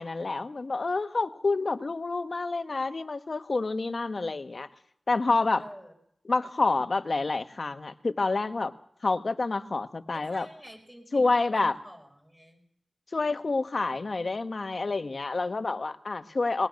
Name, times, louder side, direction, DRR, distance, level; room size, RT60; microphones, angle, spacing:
voice 1, 0.0-4.7 5.1-5.6 6.3-8.7 9.0-10.5 11.1-11.7 13.1-16.7, left 3 dB, 65° left, 9 dB, 1.2 m, -28 dB
voice 2, 5.6-5.9 10.1-12.6, equal, 10° right, 5 dB, 4.9 m, -48 dB
21.0 x 19.5 x 6.4 m, 0.72 s
cardioid pair, 45°, 0 cm